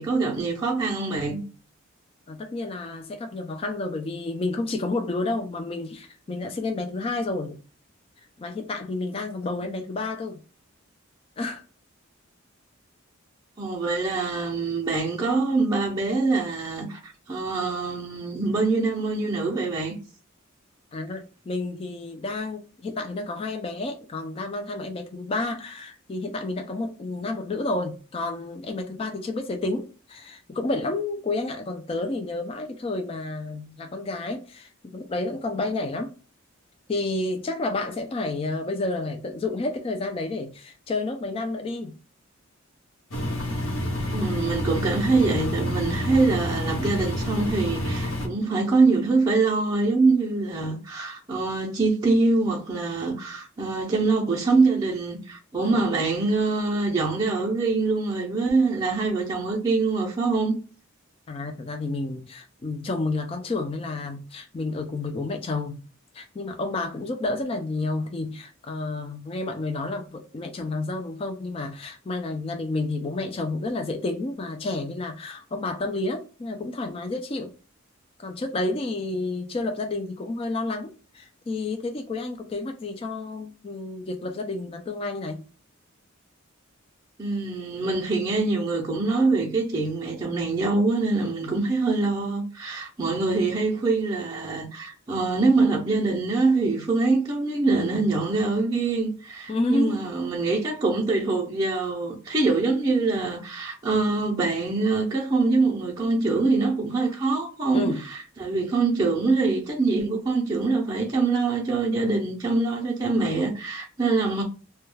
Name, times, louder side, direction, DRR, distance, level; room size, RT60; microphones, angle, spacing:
voice 1, 0.0-1.4 13.6-20.0 44.1-60.6 87.2-114.4, right 3 dB, 20° right, 0.5 m, -24 dB
voice 2, 2.3-7.6 8.4-10.4 11.4-11.6 20.9-36.1 36.9-42.0 55.6-55.8 61.3-65.8 66.1-77.5 78.2-85.4 97.7-98.1 99.5-100.0 107.7-108.0, left 2 dB, 25° left, 0.3 m, -30 dB
Engine, 43.1-48.3, left 1 dB, 80° left, 0.8 m, -28 dB
2.2 x 2.2 x 3.1 m
head